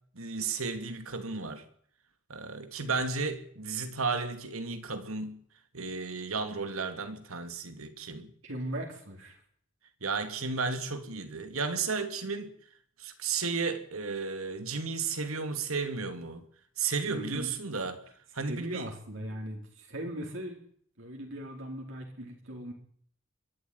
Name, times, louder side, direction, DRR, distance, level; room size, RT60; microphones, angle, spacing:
voice 1, 0.1-1.6 2.3-5.4 5.7-8.3 10.0-12.5 13.0-16.4 16.8-18.0 18.3-18.9, right 4 dB, 85° right, 2.7 m, -33 dB
voice 2, 8.4-9.4 17.1-17.5 18.5-20.6 21.0-22.7, right 1 dB, 65° right, 4.5 m, -39 dB
23.0 x 12.0 x 9.8 m
head